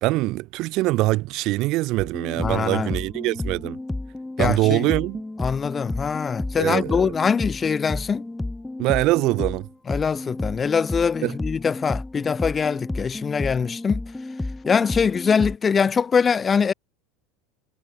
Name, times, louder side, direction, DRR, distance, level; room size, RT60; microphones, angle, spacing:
voice 1, 0.0-3.8 4.4-5.2 6.6-7.1 8.8-9.7 11.2-11.3, right 19 dB, 55° right, 0.5 m, -23 dB
sound 1, 2.0-15.5, left 2 dB, 10° left, 0.5 m, -32 dB
voice 2, 2.4-3.0 4.4-4.9 5.4-8.2 9.9-14.0 14.7-16.7, left 6 dB, 25° left, 1.2 m, -23 dB
hypercardioid pair, 90°, 0 cm